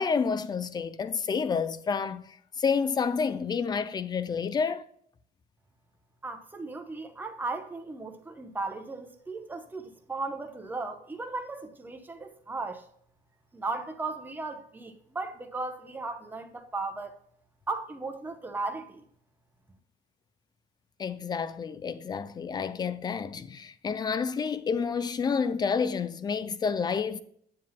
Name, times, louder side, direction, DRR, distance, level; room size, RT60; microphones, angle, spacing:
voice 1, 0.0-4.8 21.0-27.2, left 5 dB, 25° left, 0.4 m, -29 dB
voice 2, 6.2-12.8 13.5-17.2 17.7-19.0, right 3 dB, 10° right, 0.8 m, -36 dB
9.1 x 7.6 x 2.2 m
cardioid pair, 160°, 18 cm